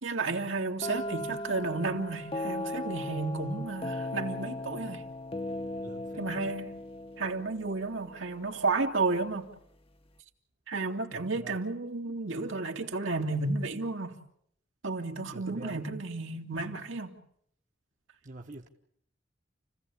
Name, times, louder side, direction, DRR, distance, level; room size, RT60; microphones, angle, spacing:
voice 1, 0.0-5.0 6.2-6.7 7.2-9.5 10.7-14.1 14.8-17.1, right 3 dB, 75° right, 2.6 m, -32 dB
sound 1, 0.8-8.5, left 1 dB, 30° left, 1.0 m, -38 dB
voice 2, 5.8-6.4 11.1-11.6 15.3-15.8 18.2-18.7, right 2 dB, 40° right, 1.4 m, -46 dB
29.5 x 16.0 x 8.6 m
head